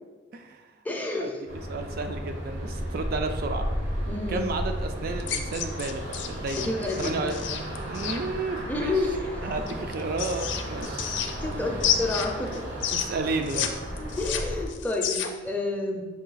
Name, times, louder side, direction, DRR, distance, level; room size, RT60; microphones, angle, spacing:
voice 1, 0.3-0.7 1.2-1.3 1.7-3.7 4.3-6.7 7.0-7.4 7.9-9.0 9.4-11.2 11.6-11.8 12.9-13.8, right 3 dB, 55° right, 6 dB, 0.3 m, -32 dB
voice 2, 0.8-1.3 4.1-4.4 6.5-7.2 8.7-9.3 11.4-12.6 14.0-16.1, left 2 dB, 10° left, 1 dB, 0.4 m, -29 dB
sound 1, 1.5-14.7, equal, 80° right, 0.9 m, -34 dB
sound 2, 5.2-8.2 9.7-11.5 11.8-13.7 14.0-15.5, left 9 dB, 75° left, 0.4 m, -30 dB
4.8 x 2.6 x 3.9 m, 1.4 s
head